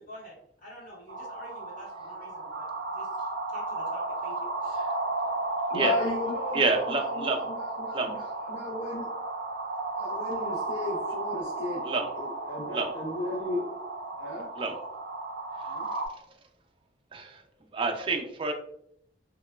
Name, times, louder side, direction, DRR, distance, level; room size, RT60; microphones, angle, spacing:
voice 1, 0.1-2.7 2.9-4.8, equal, 50° left, -6 dB, 1.3 m, -48 dB
sound 1, 1.1-16.1, right 2 dB, 75° right, 0.6 m, -34 dB
voice 2, 5.7-9.1 10.0-11.8 12.2-13.8 14.2-14.5 15.7-15.9, left 2 dB, 80° left, -5 dB, 0.6 m, -34 dB
voice 3, 6.5-7.4 7.9-8.1 11.8-12.1 12.7-12.9 14.6-14.7 17.1-17.4 17.7-18.5, right 3 dB, 30° right, 3 dB, 0.4 m, -28 dB
2.9 x 2.2 x 2.2 m, 0.71 s
head